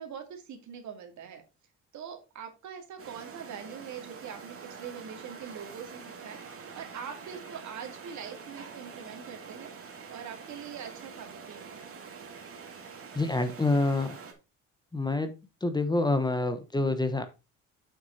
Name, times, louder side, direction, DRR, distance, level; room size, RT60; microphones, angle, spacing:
voice 1, 0.0-1.4 1.9-11.9, right 7 dB, 60° right, 4 dB, 2.5 m, -43 dB
sound 1, 3.0-14.3, right 5 dB, 45° right, 2.3 m, -46 dB
voice 2, 13.1-14.2 14.9-15.3 15.6-17.2, left 2 dB, 15° left, 9 dB, 1.1 m, -27 dB
7.6 x 6.1 x 4.2 m, 0.27 s
cardioid pair, 105°, 32 cm